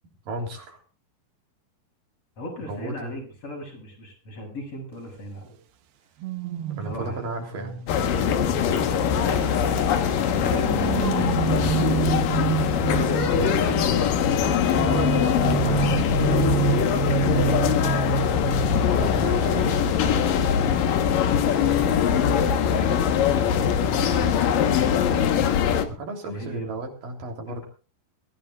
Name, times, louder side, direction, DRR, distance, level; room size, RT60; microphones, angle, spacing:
voice 1, 0.3-0.8 2.7-3.1 6.8-7.8 13.3-14.0 14.4-16.3 19.0-19.8 23.9-24.2 25.9-27.6, right 2 dB, 60° right, 3 dB, 5.0 m, -34 dB
voice 2, 2.4-5.6 6.9-7.2 9.2-12.3 23.6-24.2 25.0-25.7 26.2-26.7, left 1 dB, 40° left, 2 dB, 7.5 m, -37 dB
sound 1, 6.2-9.8 10.4-13.7 14.7-19.9 20.2-20.5, right 11 dB, 90° right, 3.1 m, -29 dB
sound 2, 7.9-25.9, left 8 dB, 65° left, 2.9 m, -22 dB
22.5 x 16.0 x 2.5 m, 0.36 s
omnidirectional pair, 4.4 m